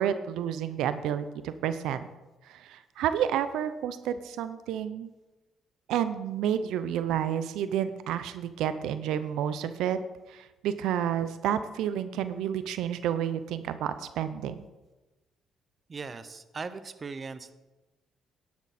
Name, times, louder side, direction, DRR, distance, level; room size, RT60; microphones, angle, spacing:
voice 1, 0.0-2.1 2.4-5.1 5.9-10.0 10.3-14.6, right 9 dB, 90° right, 12 dB, 0.5 m, -30 dB
voice 2, 15.9-17.5, right 4 dB, 35° right, 12 dB, 0.8 m, -39 dB
11.0 x 10.5 x 4.2 m, 1.1 s
cardioid pair, 90°, 0 cm